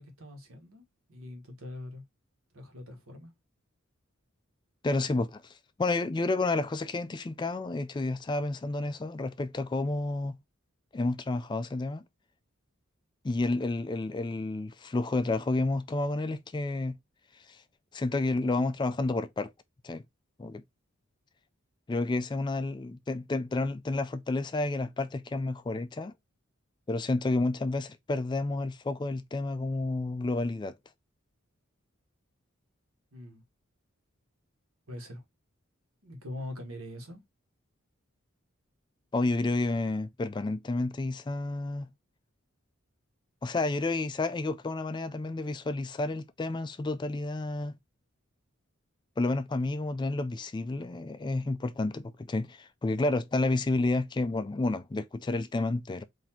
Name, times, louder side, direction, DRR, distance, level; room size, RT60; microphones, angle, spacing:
voice 1, 0.0-2.0 2.5-3.3 33.1-33.4 34.9-35.2 36.0-37.2, left 1 dB, 80° right, 1.4 m, -43 dB
voice 2, 4.8-5.5 5.8-10.4 10.9-12.0 13.2-17.0 17.5-17.6 17.9-19.5 19.8-20.0 20.4-20.6 21.9-26.1 26.9-30.7 39.1-41.9 43.4-47.8 49.2-56.0, left 2 dB, 20° left, 0.3 m, -30 dB
4.0 x 2.7 x 4.3 m
head